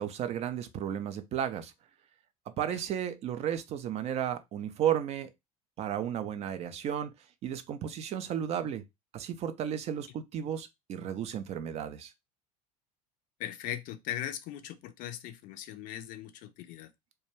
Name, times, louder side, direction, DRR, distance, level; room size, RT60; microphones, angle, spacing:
voice 1, 0.0-1.7 2.6-5.3 5.8-7.1 7.4-8.8 9.1-12.1, right 9 dB, 35° right, 0.4 m, -33 dB
voice 2, 13.4-16.9, left 11 dB, 45° left, 0.4 m, -39 dB
2.2 x 2.2 x 3.0 m
figure-of-eight pair, 70°, 19 cm